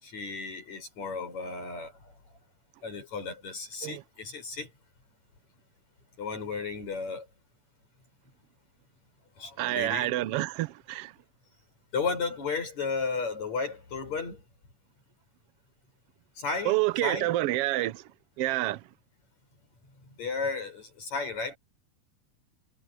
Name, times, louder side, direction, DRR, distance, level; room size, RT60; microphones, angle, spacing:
voice 1, 0.0-1.9 2.8-4.7 6.2-7.3 9.4-10.1 11.9-14.4 16.4-17.3 20.2-21.6, left 4 dB, 55° left, 7.7 m, -34 dB
voice 2, 9.6-11.1 16.7-18.0 18.4-18.8, right 16 dB, 80° right, 1.3 m, -28 dB
omnidirectional pair, 3.7 m